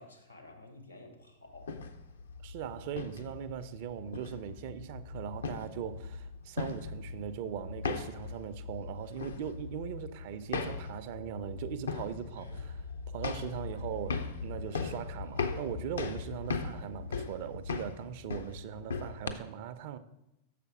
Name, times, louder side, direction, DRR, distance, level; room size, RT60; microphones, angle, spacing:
voice 1, 0.0-1.8 12.4-12.6, left 2 dB, 90° left, 1.3 m, -52 dB
sound 1, 1.5-19.3, left 4 dB, 70° left, 0.5 m, -39 dB
voice 2, 2.4-12.8 13.1-20.0, right 9 dB, 50° right, 0.4 m, -40 dB
6.7 x 5.0 x 4.7 m
figure-of-eight pair, 90°, 0 cm